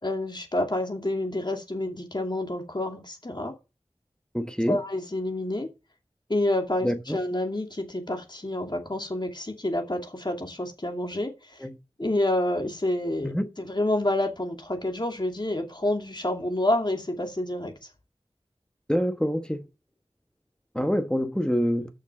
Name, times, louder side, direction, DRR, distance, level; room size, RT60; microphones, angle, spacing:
voice 1, 0.0-3.5 4.7-5.7 6.3-11.7 12.0-17.9 20.8-20.9, left 1 dB, 40° left, 2.5 m, -28 dB
voice 2, 4.3-4.8 6.8-7.2 11.6-11.7 13.2-13.5 18.9-19.6 20.7-21.9, equal, 5° left, 1.1 m, -26 dB
6.5 x 6.3 x 7.6 m
wide cardioid pair, 45°, 11 cm